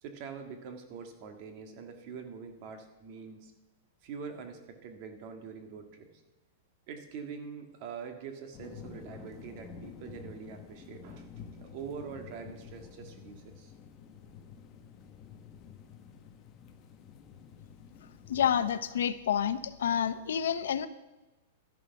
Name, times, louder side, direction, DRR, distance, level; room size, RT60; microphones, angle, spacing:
voice 1, 0.0-3.5 4.0-6.1 6.9-11.3 11.6-13.7, right 6 dB, 40° right, 6 dB, 1.8 m, -44 dB
sound 1, 8.5-18.8, left 7 dB, 25° left, 1.0 m, -50 dB
voice 2, 18.3-20.9, left 8 dB, 85° left, 13 dB, 0.8 m, -29 dB
12.5 x 10.5 x 5.9 m, 1.1 s
supercardioid pair, 165°, 0 cm